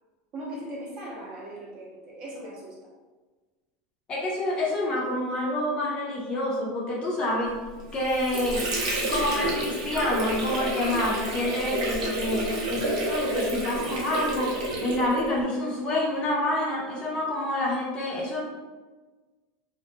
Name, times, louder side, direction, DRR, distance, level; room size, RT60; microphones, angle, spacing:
voice 1, 0.3-2.9, right 1 dB, 35° right, -4 dB, 0.7 m, -39 dB
voice 2, 4.1-7.6 7.9-8.7 9.0-18.4, left 1 dB, 25° left, -4 dB, 0.5 m, -28 dB
Water / Sink (filling or washing), 7.8-15.4, right 1 dB, 80° right, 0.7 m, -29 dB
2.4 x 2.1 x 2.6 m, 1.3 s
supercardioid pair, 150°, 4 cm